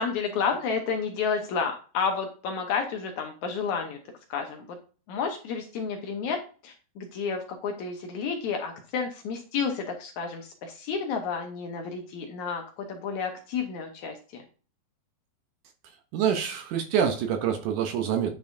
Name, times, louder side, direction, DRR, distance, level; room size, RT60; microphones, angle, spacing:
voice 1, 0.0-4.0 4.3-4.8 5.1-6.4 6.6-14.4, left 5 dB, 70° left, 3 dB, 2.0 m, -31 dB
voice 2, 16.1-18.3, right 8 dB, 75° right, 6 dB, 2.1 m, -26 dB
9.3 x 5.3 x 2.6 m, 0.38 s
omnidirectional pair, 4.0 m